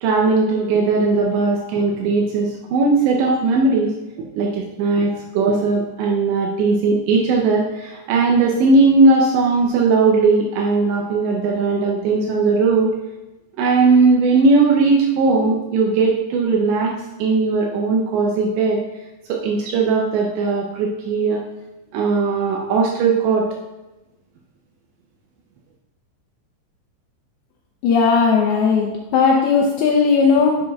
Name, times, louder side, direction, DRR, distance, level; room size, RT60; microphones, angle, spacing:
voice 1, 0.0-3.9 4.4-12.9 13.6-16.9 17.2-18.8 19.3-21.4 21.9-23.5, right 3 dB, 85° right, -1 dB, 2.8 m, -18 dB
voice 2, 27.8-30.6, left 5 dB, 80° left, 0 dB, 2.3 m, -16 dB
10.0 x 6.5 x 2.3 m, 1.1 s
omnidirectional pair, 5.1 m